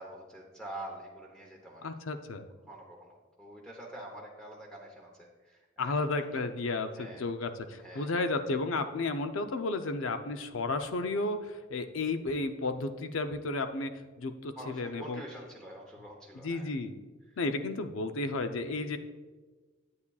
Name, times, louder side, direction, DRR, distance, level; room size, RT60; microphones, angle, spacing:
voice 1, 0.0-1.9 2.6-6.4 6.9-7.3 7.8-8.1 14.6-16.7 17.3-17.4, right 1 dB, 5° left, -2 dB, 0.8 m, -46 dB
voice 2, 1.8-2.5 5.8-15.2 16.4-16.9 17.4-19.0, left 3 dB, 85° left, 9 dB, 0.6 m, -33 dB
9.6 x 8.4 x 2.3 m, 1.3 s
head